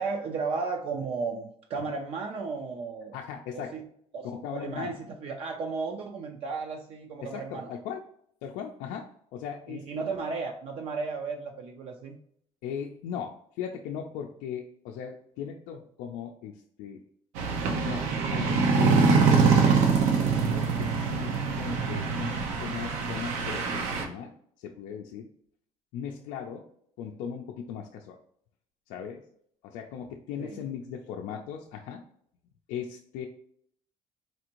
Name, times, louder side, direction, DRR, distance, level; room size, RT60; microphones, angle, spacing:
voice 1, 0.0-3.2 3.5-3.9 4.1-7.7 9.7-12.2 30.4-30.6, right 4 dB, 55° right, 3 dB, 0.5 m, -34 dB
voice 2, 3.1-3.7 4.2-4.9 7.2-8.0 8.4-10.0 12.6-17.0 17.7-18.0 18.3-20.0 20.4-22.3 22.6-25.3 25.9-26.6 27.0-28.2 28.9-29.2 29.6-32.0 32.7-33.3, left 8 dB, 85° left, 1 dB, 0.4 m, -38 dB
sound 1, 17.4-24.0, right 5 dB, 90° right, 0.7 m, -24 dB
4.2 x 2.5 x 2.9 m, 0.67 s
cardioid pair, 125°, 12 cm